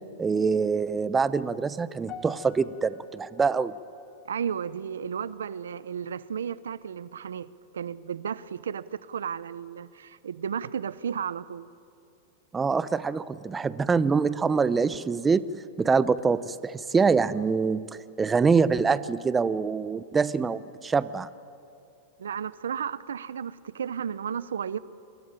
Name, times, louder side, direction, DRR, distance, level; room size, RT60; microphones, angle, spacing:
voice 1, 0.2-3.7 12.5-15.5 15.8-17.8 18.2-21.3, right 5 dB, 15° right, 15 dB, 0.8 m, -25 dB
sound 1, 2.1-6.5 6.7-7.1 7.8-7.9, left 6 dB, 35° left, 1.6 m, -50 dB
voice 2, 4.2-7.5 7.7-11.7 22.2-24.8, right 7 dB, 90° right, 17 dB, 0.8 m, -33 dB
27.5 x 22.0 x 9.1 m, 2.5 s
hypercardioid pair, 120°, 0 cm